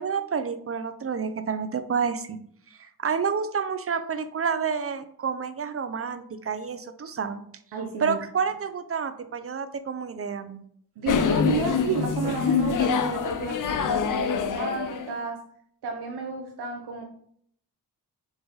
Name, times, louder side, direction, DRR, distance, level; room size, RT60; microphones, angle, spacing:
voice 1, 0.0-2.4 3.0-7.4 8.0-10.6, right 6 dB, 35° right, 10 dB, 0.5 m, -29 dB
voice 2, 7.7-8.2 11.0-15.4 15.8-17.0, right 4 dB, 85° right, 2 dB, 0.7 m, -32 dB
sound 1, 11.1-15.2, left 6 dB, 55° left, 0.5 m, -25 dB
4.7 x 2.5 x 3.9 m, 0.64 s
cardioid pair, 55°, 39 cm